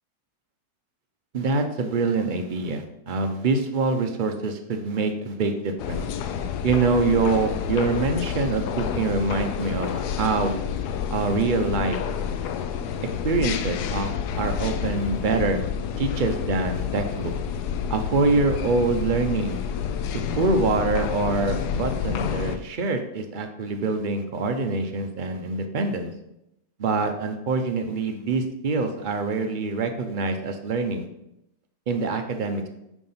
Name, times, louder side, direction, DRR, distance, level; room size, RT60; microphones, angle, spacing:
voice 1, 1.3-6.0 6.6-10.5 11.1-12.0 13.2-14.1 14.3-15.6 16.0-17.3 17.9-19.6 20.3-26.1 26.8-31.1 31.9-32.7, right 3 dB, 65° right, 6 dB, 0.4 m, -25 dB
sound 1, 5.8-22.6, left 8 dB, 75° left, 1.1 m, -29 dB
9.0 x 3.7 x 5.6 m, 0.84 s
omnidirectional pair, 1.8 m